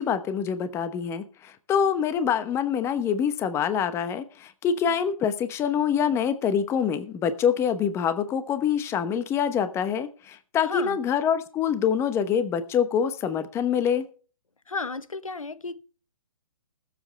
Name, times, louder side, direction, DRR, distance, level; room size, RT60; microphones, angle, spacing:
voice 1, 0.0-14.1, left 7 dB, 15° left, 0.9 m, -25 dB
voice 2, 10.6-11.0 14.7-15.8, left 4 dB, 90° left, 0.9 m, -33 dB
20.0 x 7.7 x 3.3 m
figure-of-eight pair, 130°, 17 cm